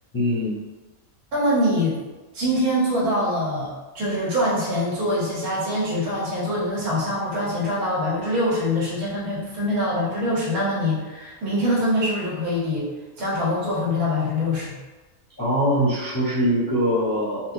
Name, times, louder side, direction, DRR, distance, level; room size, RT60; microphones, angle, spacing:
voice 1, 0.1-0.6 15.4-17.5, equal, 25° left, -10 dB, 0.5 m, -22 dB
voice 2, 1.3-2.0 2.3-12.9 13.2-14.8, left 1 dB, 90° right, -5 dB, 1.5 m, -24 dB
3.9 x 2.2 x 2.5 m, 1.2 s
omnidirectional pair, 1.5 m